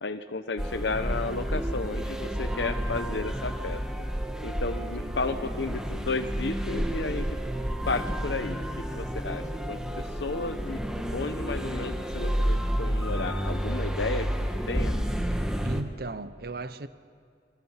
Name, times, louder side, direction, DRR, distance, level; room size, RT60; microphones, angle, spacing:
voice 1, 0.0-3.8 4.4-7.4 7.9-9.8 10.2-10.8 11.1-14.3 14.7-15.0, left 3 dB, 80° left, 0.9 m, -33 dB
sound 1, 0.6-15.8, equal, 5° right, 1.4 m, -30 dB
voice 2, 4.7-5.4 15.6-16.9, right 2 dB, 60° right, 0.9 m, -37 dB
28.5 x 21.0 x 5.8 m
head